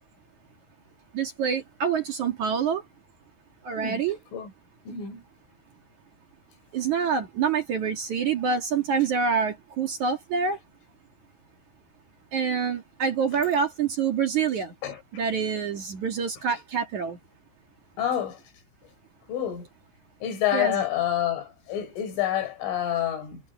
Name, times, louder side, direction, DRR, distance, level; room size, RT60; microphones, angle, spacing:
voice 1, 1.1-2.8 3.6-4.2 6.7-10.6 12.3-14.7 15.1-17.2 20.5-20.8, right 6 dB, 55° right, 2.4 m, -26 dB
voice 2, 4.9-5.2 14.8-15.0 18.0-18.4 19.3-19.7 20.2-23.4, left 11 dB, 80° left, 7.4 m, -28 dB
omnidirectional pair, 5.6 m